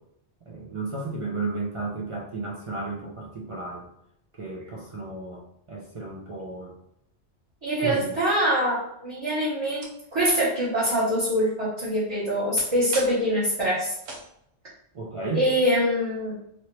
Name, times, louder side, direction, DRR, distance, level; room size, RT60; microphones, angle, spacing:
voice 1, 0.5-3.9 4.4-6.7 7.8-8.1 14.9-15.5, right 3 dB, 45° right, -2 dB, 0.4 m, -33 dB
voice 2, 7.6-13.9 15.3-16.3, equal, 25° right, -10 dB, 1.0 m, -24 dB
sound 1, 9.8-10.1 10.8-11.1 12.9-13.2 14.0-14.3, right 2 dB, 70° right, 1.0 m, -38 dB
2.9 x 2.8 x 3.0 m, 0.78 s
omnidirectional pair, 1.2 m